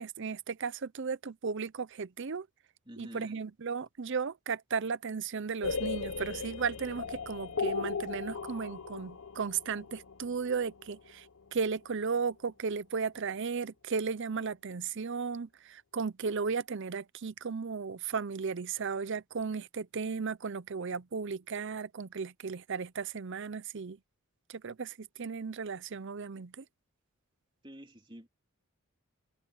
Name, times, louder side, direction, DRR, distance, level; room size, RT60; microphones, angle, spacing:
voice 1, 0.0-2.5 3.0-24.0 24.5-26.7, right 5 dB, 55° right, 0.6 m, -35 dB
voice 2, 2.9-3.4 27.6-28.3, equal, 20° right, 3.4 m, -48 dB
sound 1, 5.6-11.4, left 5 dB, 65° left, 1.0 m, -37 dB
head